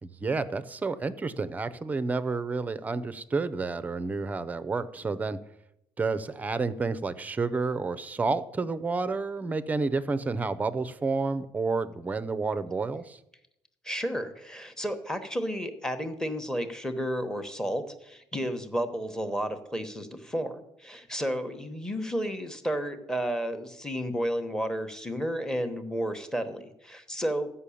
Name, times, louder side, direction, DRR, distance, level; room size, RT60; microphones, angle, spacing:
voice 1, 0.0-5.4 6.0-13.2, right 4 dB, 15° right, 14 dB, 0.5 m, -30 dB
voice 2, 13.8-27.5, equal, 5° left, 8 dB, 1.0 m, -32 dB
14.0 x 5.7 x 8.4 m, 0.82 s
cardioid pair, 175°, 11 cm